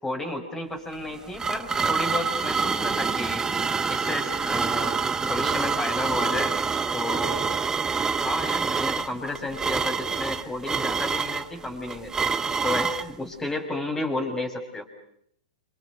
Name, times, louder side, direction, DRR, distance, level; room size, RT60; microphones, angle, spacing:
voice 1, 0.0-3.5 3.9-6.6 6.9-7.4 8.2-12.3 12.6-14.8, left 2 dB, 10° left, 5 dB, 6.6 m, -32 dB
sound 1, 0.9-13.1, right 5 dB, 15° right, 1.2 m, -26 dB
29.5 x 27.5 x 6.6 m, 0.72 s
hypercardioid pair, 115°, 4 cm